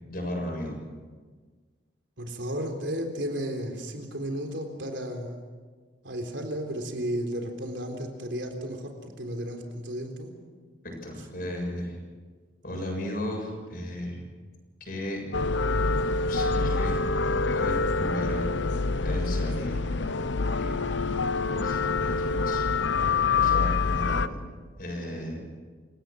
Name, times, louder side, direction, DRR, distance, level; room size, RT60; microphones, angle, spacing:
voice 1, 0.1-0.7 11.0-12.0 12.6-14.2 14.8-15.2 16.3-17.0 17.5-18.5 19.0-20.8 21.5-22.7 23.3-24.4 24.8-25.4, left 1 dB, 50° left, 1 dB, 7.4 m, -35 dB
voice 2, 2.2-5.4 6.0-10.3, equal, 85° right, 4 dB, 3.8 m, -33 dB
sound 1, 15.3-24.3, left 4 dB, 80° left, 0.8 m, -26 dB
28.0 x 17.5 x 6.5 m, 1.5 s
head